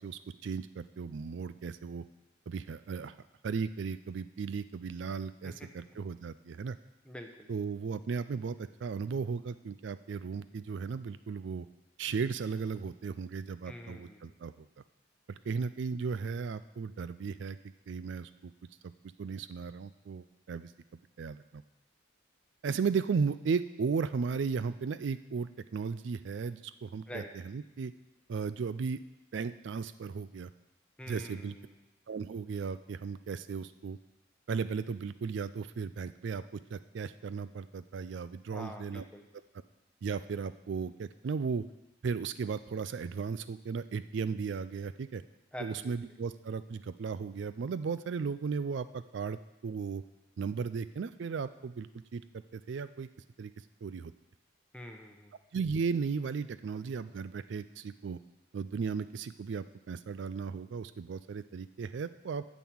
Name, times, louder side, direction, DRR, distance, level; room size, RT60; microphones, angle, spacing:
voice 1, 0.0-2.0 2.5-3.1 3.4-6.8 7.5-11.7 12.0-14.7 15.5-17.6 17.9-18.5 18.8-18.9 19.2-20.7 21.2-21.6 22.6-27.9 28.3-29.0 29.3-30.5 31.1-31.6 32.1-34.0 34.5-36.4 36.7-39.0 40.0-41.6 42.0-45.2 45.6-50.0 50.4-52.2 52.5-53.1 53.4-53.5 53.8-54.1 55.5-58.2 58.5-62.5, right 5 dB, 65° right, 13 dB, 0.4 m, -35 dB
voice 2, 7.0-7.5 13.6-14.3 27.1-27.3 31.0-31.7 38.5-39.2 45.5-45.9 54.7-55.3, equal, 5° left, 3 dB, 1.0 m, -45 dB
9.3 x 6.2 x 8.6 m, 0.96 s
head